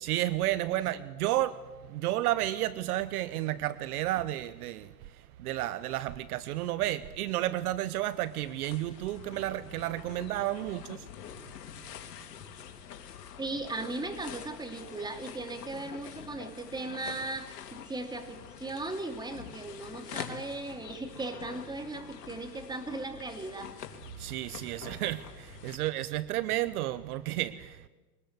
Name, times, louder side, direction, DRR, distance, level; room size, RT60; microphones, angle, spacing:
voice 1, 0.0-4.9 5.4-11.0 24.2-27.9, right 14 dB, 60° right, 1.0 m, -32 dB
sound 1, 7.8-25.8, left 8 dB, 70° left, 3.1 m, -46 dB
voice 2, 13.4-23.7, right 2 dB, 10° right, 2.9 m, -37 dB
23.0 x 20.0 x 8.2 m
hypercardioid pair, 120°, 49 cm